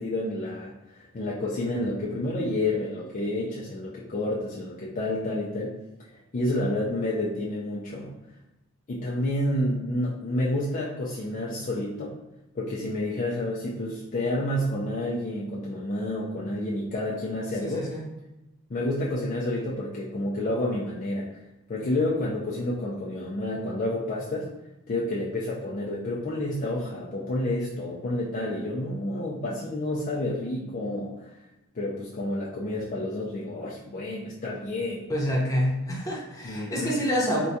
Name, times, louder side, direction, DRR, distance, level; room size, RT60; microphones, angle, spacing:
voice 1, 0.0-5.8 6.3-8.1 8.9-12.1 12.6-17.9 18.7-21.3 21.7-24.5 24.9-31.3 31.7-35.1 36.4-36.9, left 1 dB, 40° left, -5 dB, 0.4 m, -29 dB
voice 2, 17.6-18.0 35.1-37.5, equal, 15° left, -4 dB, 0.8 m, -27 dB
4.5 x 2.3 x 2.7 m, 0.96 s
head